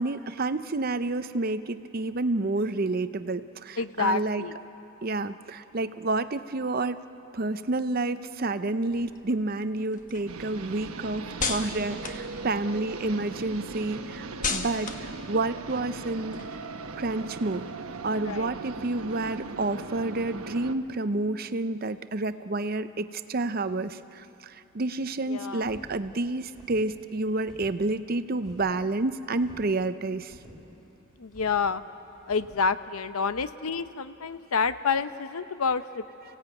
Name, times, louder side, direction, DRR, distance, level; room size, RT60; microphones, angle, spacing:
voice 1, 0.0-4.5 5.0-7.0 7.3-16.4 17.0-17.7 18.0-30.3, right 2 dB, 45° right, 12 dB, 0.6 m, -29 dB
voice 2, 3.8-4.6 18.2-18.5 25.3-25.7 31.2-31.8 32.3-36.0, left 5 dB, 80° left, 12 dB, 0.8 m, -28 dB
sound 1, 8.9-13.1 13.4-16.9, left 4 dB, 35° left, 1.3 m, -37 dB
sound 2, 10.3-20.8, right 3 dB, 85° right, 1.1 m, -39 dB
sound 3, 25.6-32.7, equal, ahead, 4.2 m, -51 dB
30.0 x 16.5 x 9.1 m, 3.0 s
head